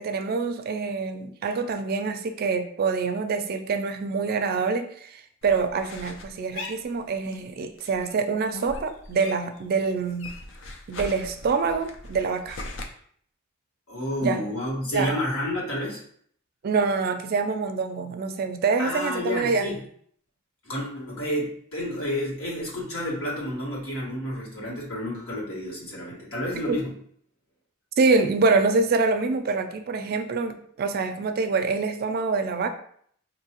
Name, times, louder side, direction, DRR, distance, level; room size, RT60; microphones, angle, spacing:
voice 1, 0.0-10.3 10.9-12.6 14.2-14.4 14.9-15.1 16.6-19.7 26.7-26.8 28.0-32.7, right 4 dB, 50° right, 8 dB, 0.4 m, -25 dB
sound 1, 5.4-7.5 7.8-9.6 9.9-12.8, left 2 dB, 65° left, 0.5 m, -40 dB
voice 2, 13.9-16.0 18.8-19.8 20.6-27.0, left 1 dB, 85° left, -5 dB, 1.5 m, -30 dB
4.5 x 2.6 x 2.9 m, 0.62 s
head